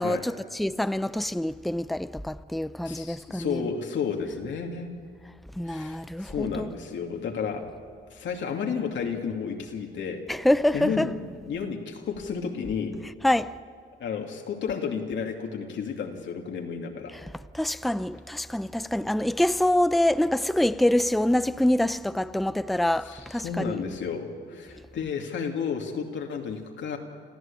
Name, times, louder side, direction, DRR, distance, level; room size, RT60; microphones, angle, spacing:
voice 1, 0.0-3.6 5.6-6.7 10.3-11.1 13.2-13.6 17.1-23.8, left 1 dB, ahead, 0.5 m, -26 dB
voice 2, 2.8-4.9 5.7-7.7 8.1-10.2 10.7-11.1 11.4-13.0 14.0-17.1 23.1-27.0, left 6 dB, 70° left, 2.5 m, -32 dB
27.0 x 14.5 x 8.7 m
cardioid pair, 90°, 20 cm